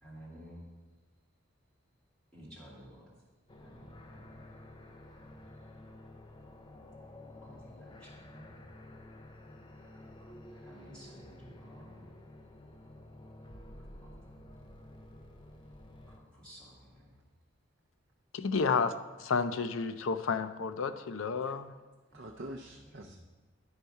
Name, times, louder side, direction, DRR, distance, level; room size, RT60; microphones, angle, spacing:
voice 1, 0.0-0.6 2.3-3.1 3.6-4.5 5.1-5.3 7.4-8.5 10.5-12.0 14.0-14.1 16.1-17.1 22.1-22.2 22.9-23.1, equal, 5° left, 2.4 m, -53 dB
sound 1, 3.5-16.2, left 1 dB, 25° left, 0.5 m, -51 dB
voice 2, 9.8-10.3 22.1-23.2, right 1 dB, 55° right, 0.5 m, -46 dB
voice 3, 18.3-21.7, left 5 dB, 80° left, 0.5 m, -31 dB
10.5 x 4.5 x 5.3 m
head